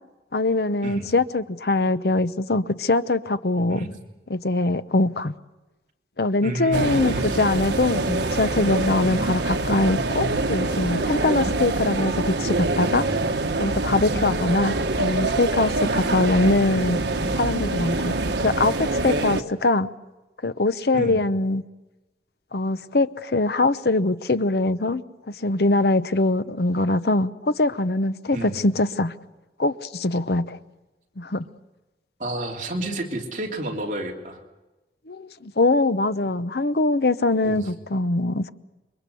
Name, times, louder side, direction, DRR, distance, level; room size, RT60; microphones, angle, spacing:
voice 1, 0.3-3.9 4.3-5.3 6.2-13.1 13.6-17.0 17.3-18.1 18.4-19.9 20.4-21.6 22.5-25.0 25.4-29.1 29.6-30.6 31.2-31.4 35.1-38.5, left 2 dB, 65° left, 0.8 m, -22 dB
voice 2, 6.4-7.4 9.1-9.3 11.4-11.6 14.1-14.2 15.8-16.3 20.9-21.2 28.3-28.6 32.2-34.4 37.4-37.7, right 2 dB, 45° right, 3.0 m, -31 dB
sound 1, 6.7-19.4, right 2 dB, 85° right, 1.3 m, -25 dB
28.0 x 23.0 x 6.9 m
head